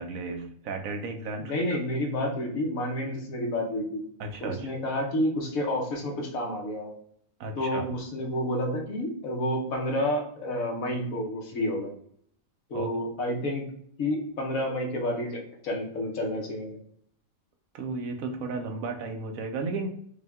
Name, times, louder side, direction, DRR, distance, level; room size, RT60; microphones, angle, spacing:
voice 1, 0.0-1.5 4.2-4.7 7.4-7.9 12.7-12.9 17.7-19.9, right 3 dB, 70° right, 5 dB, 1.1 m, -34 dB
voice 2, 1.4-4.0 4.4-6.9 7.6-11.9 12.7-13.7 14.0-16.8, left 1 dB, 70° left, 1 dB, 1.4 m, -30 dB
5.2 x 2.3 x 3.5 m, 0.64 s
omnidirectional pair, 1.5 m